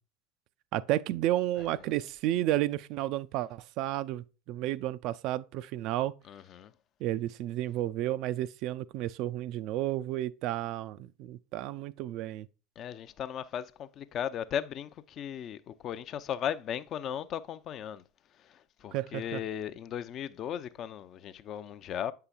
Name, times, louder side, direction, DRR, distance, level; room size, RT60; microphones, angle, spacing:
voice 1, 0.7-6.1 7.0-12.5 18.9-19.4, right 14 dB, 55° right, 0.3 m, -32 dB
voice 2, 6.3-6.7 12.8-18.0 18.5-22.1, left 9 dB, 45° left, 0.5 m, -37 dB
8.0 x 5.7 x 2.4 m
hypercardioid pair, 80°, 0 cm